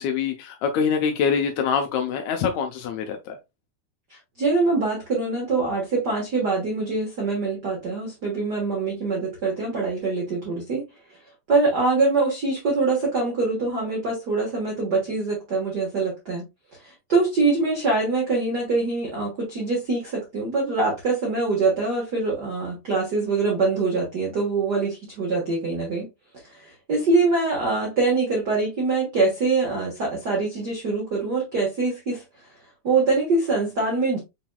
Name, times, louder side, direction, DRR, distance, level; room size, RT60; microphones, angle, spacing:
voice 1, 0.0-3.4, left 6 dB, 80° left, 1.6 m, -24 dB
voice 2, 4.1-10.8 11.5-16.4 16.8-26.1 26.6-32.2 32.8-34.2, right 3 dB, 65° right, 1.0 m, -24 dB
5.8 x 3.9 x 2.2 m
omnidirectional pair, 4.1 m